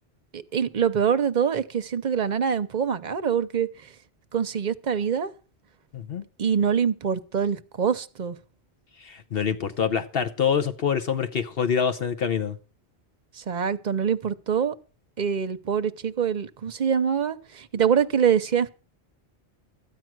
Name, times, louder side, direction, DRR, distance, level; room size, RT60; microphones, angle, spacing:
voice 1, 0.3-3.7 4.3-5.3 6.4-8.4 13.3-14.7 15.2-18.7, right 7 dB, 45° right, 0.9 m, -24 dB
voice 2, 5.9-6.2 9.0-12.6, left 7 dB, 60° left, 1.0 m, -26 dB
13.5 x 9.1 x 6.0 m
omnidirectional pair, 1.1 m